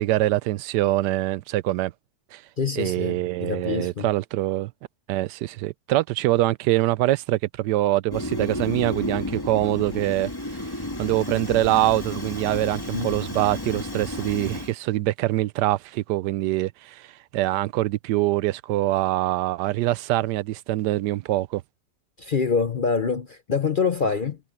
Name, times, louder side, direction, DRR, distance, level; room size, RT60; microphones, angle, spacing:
voice 1, 0.0-1.9 2.3-2.4 2.8-4.7 5.1-10.6 11.0-21.6, right 16 dB, 85° right, 1.2 m, -24 dB
voice 2, 2.6-4.1 12.9-13.1 22.2-24.4, left 5 dB, 45° left, 0.6 m, -25 dB
Fire, 8.1-14.7, left 1 dB, 15° left, 1.5 m, -32 dB
omnidirectional pair, 1.8 m